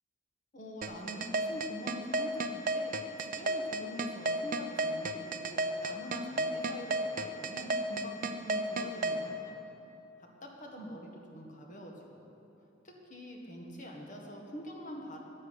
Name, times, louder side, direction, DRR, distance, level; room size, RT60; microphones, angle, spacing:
voice 1, 0.5-9.6 10.4-12.1 12.8-15.2, equal, 40° left, 0 dB, 1.8 m, -44 dB
sound 1, 0.8-9.2, right 3 dB, 45° right, 0.7 m, -31 dB
10.5 x 9.7 x 8.2 m, 2.8 s
head